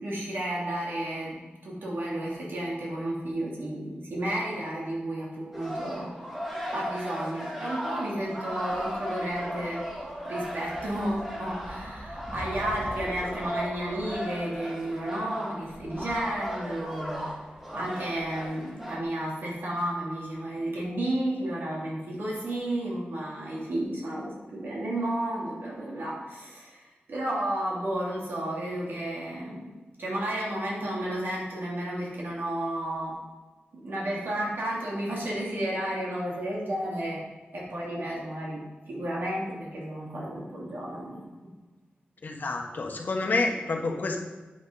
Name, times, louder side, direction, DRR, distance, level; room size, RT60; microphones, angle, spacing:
voice 1, 0.0-1.3 1.6-6.1 6.7-9.8 10.2-17.2 17.7-29.6 30.0-33.2 33.7-37.2 37.5-41.2, right 1 dB, 75° right, -5 dB, 3.1 m, -32 dB
sound 1, 5.5-19.0, equal, 15° right, 2.3 m, -36 dB
voice 2, 42.2-44.2, left 3 dB, 55° left, 2 dB, 1.4 m, -28 dB
9.9 x 9.2 x 4.1 m, 1.2 s
wide cardioid pair, 125°, 4 cm